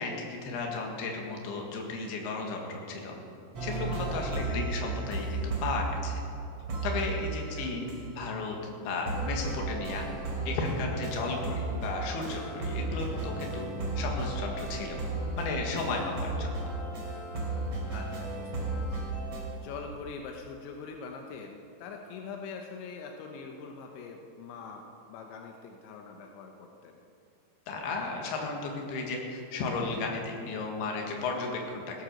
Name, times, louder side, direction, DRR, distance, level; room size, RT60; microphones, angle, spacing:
voice 1, 0.0-3.2 3.6-6.2 6.8-10.1 10.5-13.7 14.0-15.0 15.4-16.7 27.7-32.0, left 3 dB, 65° left, 0 dB, 3.6 m, -34 dB
sound 1, 3.5-6.3 6.7-7.9 9.1-19.4, right 2 dB, 35° right, 3.6 m, -34 dB
voice 2, 17.9-27.0, left 5 dB, 85° left, 3 dB, 3.3 m, -44 dB
16.5 x 10.5 x 6.5 m, 2.7 s
omnidirectional pair, 5.2 m